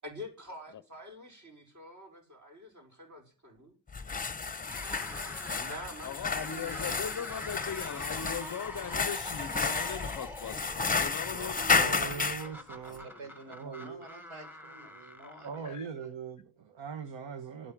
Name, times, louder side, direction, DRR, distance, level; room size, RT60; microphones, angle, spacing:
voice 1, 0.0-3.7 5.5-7.7 11.3-12.8 13.1-13.3, equal, 35° right, 5.6 m, -47 dB
sound 1, 3.9-12.5, left 4 dB, 15° left, 0.9 m, -32 dB
sound 2, 4.6-15.9, left 1 dB, 5° right, 1.9 m, -46 dB
voice 2, 6.0-12.0 15.2-15.9, left 7 dB, 40° left, 0.6 m, -40 dB
voice 3, 11.7-13.1 13.5-14.0 15.4-17.7, right 6 dB, 60° right, 1.5 m, -40 dB
voice 4, 12.8-16.1, right 2 dB, 75° right, 5.1 m, -50 dB
12.0 x 8.6 x 7.4 m
wide cardioid pair, 130°, 49 cm